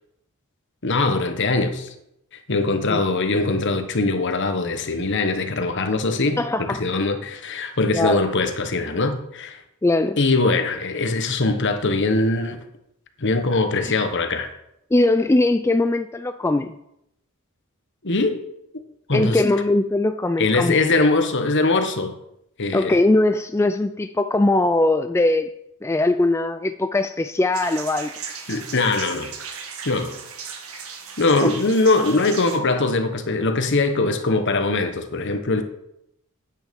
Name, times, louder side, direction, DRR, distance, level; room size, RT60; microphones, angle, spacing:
voice 1, 0.8-1.9 2.5-9.6 10.2-12.6 13.2-14.5 18.0-18.4 19.1-19.4 20.4-22.1 22.6-23.0 28.5-29.3 29.8-30.1 31.2-35.6, left 3 dB, 55° left, 1.2 m, -22 dB
voice 2, 6.4-7.1 7.9-8.2 9.8-10.2 13.9-14.0 14.9-16.7 19.1-20.8 22.7-25.5 25.8-28.1 31.4-31.5, left 2 dB, 10° left, 0.3 m, -20 dB
sound 1, 27.5-32.6, right 6 dB, 70° right, 1.7 m, -36 dB
9.4 x 9.1 x 5.3 m
head